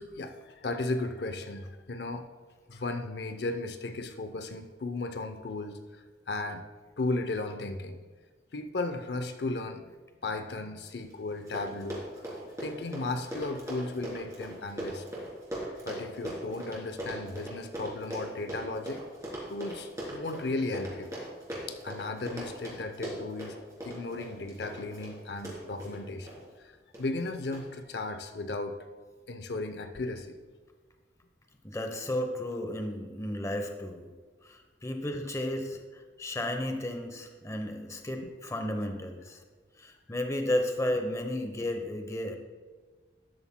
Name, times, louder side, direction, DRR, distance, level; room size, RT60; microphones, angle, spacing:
voice 1, 0.0-2.3 2.7-6.6 7.0-8.0 8.5-9.9 10.2-12.3 12.6-15.0 15.8-19.0 19.5-21.1 21.7-23.6 23.8-28.9 29.3-30.4 38.2-38.3, left 2 dB, 65° left, 7 dB, 0.6 m, -35 dB
Run, 11.1-11.2 11.4-26.4 26.9-27.2 27.5-27.6, right 1 dB, 20° right, 3.3 m, -39 dB
voice 2, 31.6-34.1 34.4-35.8 36.2-39.4 39.8-42.4, left 1 dB, 15° left, 6 dB, 0.9 m, -33 dB
13.0 x 11.0 x 2.2 m, 1.4 s
head